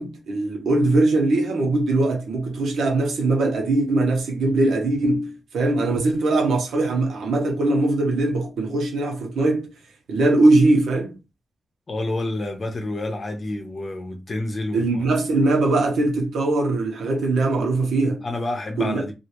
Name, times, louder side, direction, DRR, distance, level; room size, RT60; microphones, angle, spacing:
voice 1, 0.0-9.7 10.1-11.2 14.7-18.2 18.8-19.0, right 2 dB, 80° right, 1.0 m, -21 dB
voice 2, 11.9-15.0 18.2-19.1, left 2 dB, 30° left, 0.9 m, -29 dB
3.1 x 2.6 x 3.0 m
wide cardioid pair, 155°, 0 cm